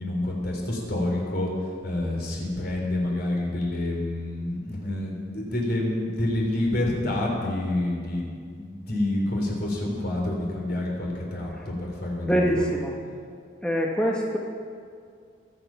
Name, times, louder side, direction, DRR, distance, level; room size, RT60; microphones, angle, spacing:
voice 1, 0.0-1.5 1.8-12.7, left 1 dB, 55° left, -1 dB, 3.6 m, -28 dB
voice 2, 12.3-12.9 13.6-14.4, equal, 5° left, -1 dB, 1.0 m, -24 dB
22.5 x 7.8 x 5.8 m, 2.2 s
head